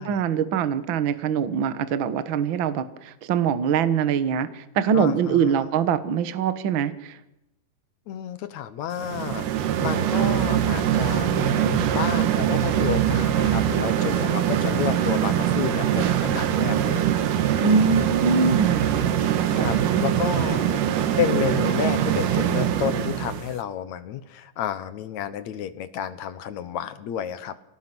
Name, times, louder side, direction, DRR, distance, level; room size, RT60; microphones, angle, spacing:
voice 1, 0.0-7.2 17.6-18.9 19.5-20.7, right 6 dB, 55° right, 12 dB, 1.4 m, -23 dB
voice 2, 4.9-5.7 8.1-9.5 9.8-17.2 17.9-18.1 19.5-20.7 21.2-27.6, left 9 dB, 65° left, 12 dB, 2.2 m, -30 dB
sound 1, 9.0-23.5, right 10 dB, 75° right, 2.8 m, -23 dB
28.5 x 18.5 x 6.2 m, 0.86 s
omnidirectional pair, 3.9 m